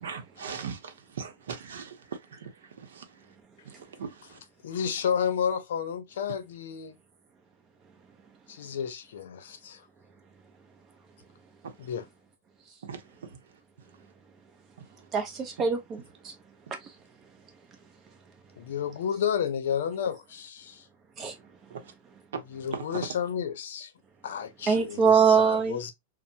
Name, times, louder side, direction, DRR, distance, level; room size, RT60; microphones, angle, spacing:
voice 1, 0.0-1.9 2.4-2.5 3.0-3.1 4.0-4.1 12.8-13.0 21.7-21.8 22.7-22.8, right 6 dB, 85° right, 0.7 m, -38 dB
voice 2, 4.2-7.0 8.5-9.9 11.8-12.1 18.6-20.9 22.5-23.9 24.2-25.9, left 8 dB, 75° left, 0.6 m, -31 dB
voice 3, 15.1-16.3 21.2-21.4 24.7-25.8, right 6 dB, 25° right, 0.7 m, -23 dB
3.1 x 2.1 x 2.7 m
supercardioid pair, 150°, 0 cm